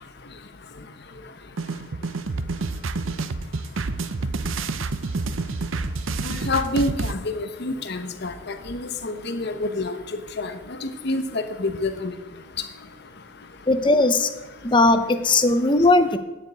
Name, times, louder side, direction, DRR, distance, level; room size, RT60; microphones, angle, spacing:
sound 1, 1.6-7.1, right 3 dB, 70° right, 0.7 m, -28 dB
voice 1, 6.2-8.3 8.7-10.0 10.4-10.5 10.8-11.2 11.6-12.1, left 2 dB, 50° left, 9 dB, 1.1 m, -27 dB
voice 2, 13.7-14.3 14.6-16.2, left 2 dB, 25° left, 10 dB, 0.7 m, -18 dB
9.4 x 7.8 x 8.4 m, 1.1 s
head